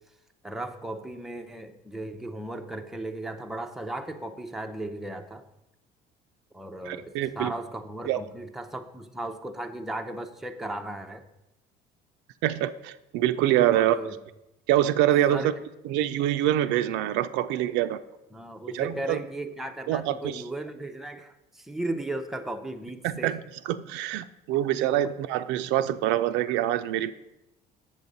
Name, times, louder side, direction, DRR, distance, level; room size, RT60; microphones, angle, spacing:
voice 1, 0.4-5.4 6.5-11.2 13.7-14.2 15.3-15.6 18.3-23.3, right 1 dB, ahead, 5 dB, 0.5 m, -36 dB
voice 2, 6.9-7.5 8.1-8.2 12.4-14.0 14.7-15.5 15.8-18.0 18.7-19.2 19.9-20.4 23.0-27.1, right 12 dB, 75° right, 11 dB, 0.4 m, -25 dB
7.2 x 7.2 x 4.0 m, 0.91 s
cardioid pair, 115°, 19 cm